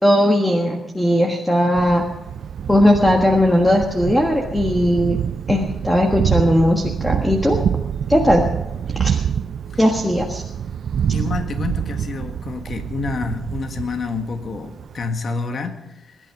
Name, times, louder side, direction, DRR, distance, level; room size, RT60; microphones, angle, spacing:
voice 1, 0.0-2.0 2.7-5.2 5.5-7.6 8.1-8.4 9.0-9.2 9.8-10.4, equal, 10° left, 1 dB, 1.5 m, -17 dB
Thunder, 1.7-15.1, right 8 dB, 60° right, 0.4 m, -26 dB
voice 2, 11.1-16.2, left 4 dB, 45° left, 6 dB, 1.6 m, -28 dB
22.0 x 11.5 x 5.0 m, 1.0 s
wide cardioid pair, 140°, 0 cm